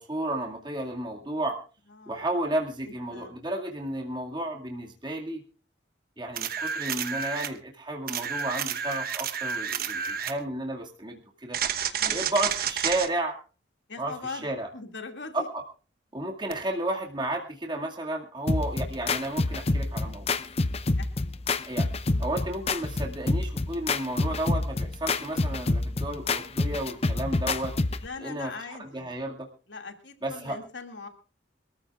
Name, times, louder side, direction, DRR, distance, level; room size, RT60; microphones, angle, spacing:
voice 1, 0.0-1.6 2.1-5.4 6.2-11.6 12.1-13.4 14.0-14.7 15.3-15.6 16.1-20.3 21.7-21.9 22.2-27.7 28.2-29.5 30.2-30.6, right 1 dB, 25° right, 0 dB, 2.1 m, -32 dB
voice 2, 2.0-2.4 3.1-3.3 12.0-12.3 13.9-14.5 14.7-15.4 21.0-21.1 22.1-22.3 28.0-29.1 29.7-31.1, left 4 dB, 85° left, 5 dB, 2.4 m, -40 dB
sound 1, 6.4-7.6 8.1-10.4 11.5-13.1 16.5-16.6, right 7 dB, 55° right, 1.1 m, -30 dB
sound 2, 18.5-28.1, left 2 dB, 35° left, 0.7 m, -27 dB
26.0 x 14.0 x 2.4 m, 0.36 s
head